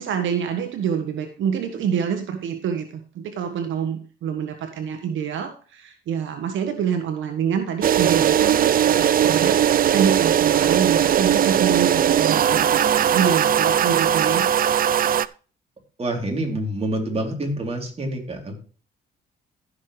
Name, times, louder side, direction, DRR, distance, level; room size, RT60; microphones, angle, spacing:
voice 1, 0.0-9.6 9.9-14.5, right 8 dB, 75° right, 6 dB, 1.4 m, -26 dB
sound 1, 7.8-15.3, right 9 dB, 45° right, 0.5 m, -19 dB
voice 2, 16.0-18.5, right 1 dB, 30° right, 1 dB, 3.5 m, -27 dB
14.5 x 6.4 x 3.3 m, 0.39 s
cardioid pair, 90°, 20 cm